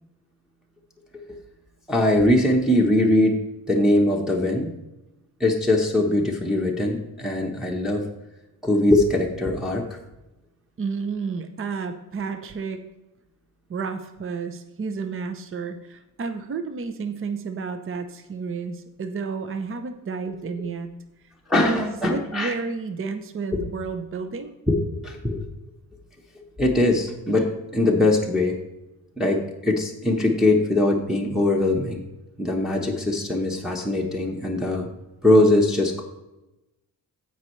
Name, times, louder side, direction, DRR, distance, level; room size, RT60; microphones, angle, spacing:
voice 1, 1.9-3.4 3.7-4.7 5.4-8.0 8.6-10.0 21.5-22.5 24.7-25.4 26.6-28.6 29.2-32.0 32.4-34.9 35.2-36.0, left 1 dB, ahead, -2 dB, 1.1 m, -21 dB
voice 2, 10.8-12.8 13.7-20.9 21.6-24.5, right 5 dB, 35° right, 8 dB, 0.7 m, -31 dB
16.0 x 5.4 x 3.2 m, 0.97 s
cardioid pair, 115°, 36 cm